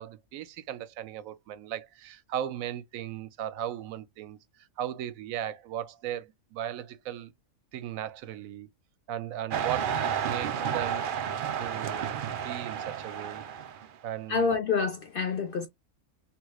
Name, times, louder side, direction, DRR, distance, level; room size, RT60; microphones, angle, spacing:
voice 1, 0.0-7.3 7.7-8.7 9.1-11.1 11.6-13.4 14.0-14.5, right 11 dB, 85° right, 1.0 m, -37 dB
sound 1, 9.5-13.9, right 8 dB, 60° right, 0.5 m, -31 dB
voice 2, 14.3-15.7, left 5 dB, 65° left, 0.5 m, -27 dB
3.6 x 3.0 x 2.2 m
omnidirectional pair, 1.4 m